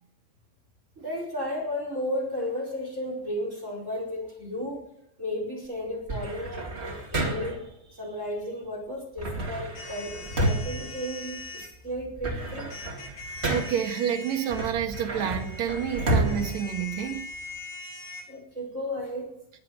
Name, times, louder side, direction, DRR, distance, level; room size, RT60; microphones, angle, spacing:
voice 1, 1.0-4.9 5.2-12.8 18.3-19.3, left 1 dB, 15° right, 0 dB, 4.9 m, -34 dB
sound 1, 6.1-7.7 9.2-11.6 12.0-13.9 14.5-17.5, right 1 dB, 35° right, 1.0 m, -31 dB
sound 2, 9.7-11.7 12.7-18.2, left 3 dB, 80° left, 6.9 m, -41 dB
voice 2, 13.4-17.3, right 9 dB, 55° right, 3 dB, 2.3 m, -29 dB
20.0 x 8.3 x 7.6 m, 0.81 s
omnidirectional pair, 5.1 m